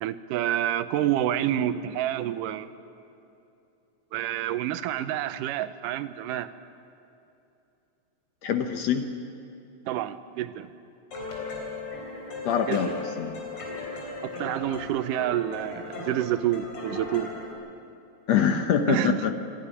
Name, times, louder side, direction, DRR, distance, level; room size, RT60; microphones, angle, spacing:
voice 1, 0.0-2.7 4.1-6.5 9.9-10.7 12.7-12.8 14.2-17.3 18.9-19.2, right 12 dB, 90° right, 12 dB, 2.4 m, -28 dB
voice 2, 8.4-9.0 12.4-13.4 18.3-19.3, left 7 dB, 65° left, 6 dB, 1.9 m, -24 dB
sound 1, 11.1-17.5, left 3 dB, 45° left, 4.5 m, -37 dB
26.5 x 11.5 x 9.8 m, 2.8 s
omnidirectional pair, 3.6 m